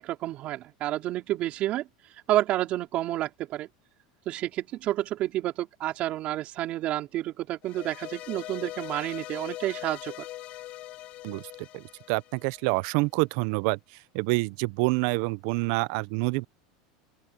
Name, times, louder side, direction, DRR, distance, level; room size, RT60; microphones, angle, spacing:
voice 1, 0.0-1.9 2.3-3.7 4.3-10.1, right 14 dB, 45° right, 4.4 m, -30 dB
sound 1, 7.6-12.9, left 15 dB, 45° left, 3.1 m, -42 dB
voice 2, 11.7-13.8 14.1-16.5, right 26 dB, 60° right, 0.6 m, -27 dB
open air
supercardioid pair, 125°, 3 cm